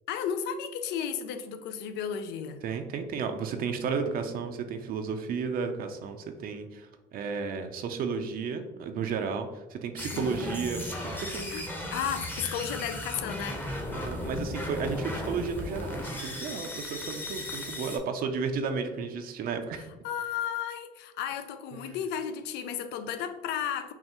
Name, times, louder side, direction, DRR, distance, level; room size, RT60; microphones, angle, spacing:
voice 1, 0.1-2.6 10.1-10.5 11.5-11.7 11.9-13.6 19.8-23.9, left 8 dB, 85° left, 10 dB, 0.4 m, -34 dB
voice 2, 2.6-11.7 13.9-19.8 21.8-22.0, right 5 dB, 60° right, 6 dB, 0.5 m, -33 dB
sound 1, 10.0-18.0, left 1 dB, 10° left, 0.7 m, -36 dB
5.5 x 2.4 x 2.9 m, 1.1 s
cardioid pair, 110°, 17 cm